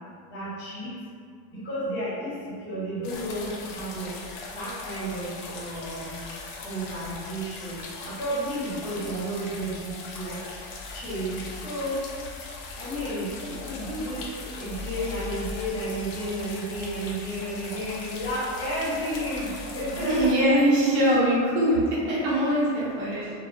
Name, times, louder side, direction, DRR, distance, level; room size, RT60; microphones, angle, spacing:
voice 1, 0.3-0.9 1.5-2.4 2.6-4.1 4.5-6.2 6.6-7.8 8.0-10.4 10.9-12.0 12.8-14.2 14.6-20.3, right 1 dB, 25° left, -10 dB, 0.9 m, -32 dB
sound 1, 3.0-20.3, left 3 dB, 50° left, 0.4 m, -39 dB
voice 2, 20.1-23.3, right 1 dB, 75° right, -7 dB, 0.9 m, -22 dB
2.4 x 2.1 x 2.6 m, 2.1 s
cardioid pair, 135°, 45 cm